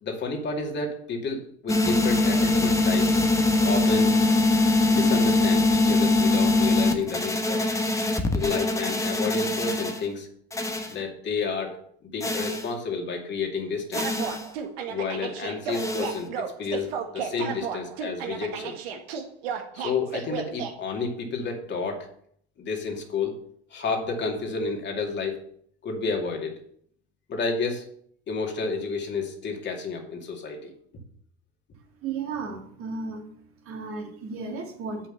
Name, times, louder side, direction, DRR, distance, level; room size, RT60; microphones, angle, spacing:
voice 1, 0.0-3.2 3.6-4.2 4.9-7.7 8.3-10.3 10.9-11.8 12.0-14.2 14.9-18.8 19.7-22.1 22.6-23.3 23.7-25.4 25.8-26.6 27.3-27.8 28.3-30.7, left 4 dB, 35° left, 2 dB, 2.4 m, -30 dB
sound 1, 1.7-10.0 10.5-10.9 12.2-12.7 13.9-14.4 15.7-16.2, left 2 dB, 10° left, 1.4 m, -23 dB
sound 2, 14.0-20.7, right 7 dB, 70° right, 1.7 m, -33 dB
voice 2, 32.0-33.2 33.6-35.1, right 4 dB, 45° right, 1 dB, 2.7 m, -34 dB
7.9 x 5.9 x 6.9 m, 0.64 s
hypercardioid pair, 85°, 31 cm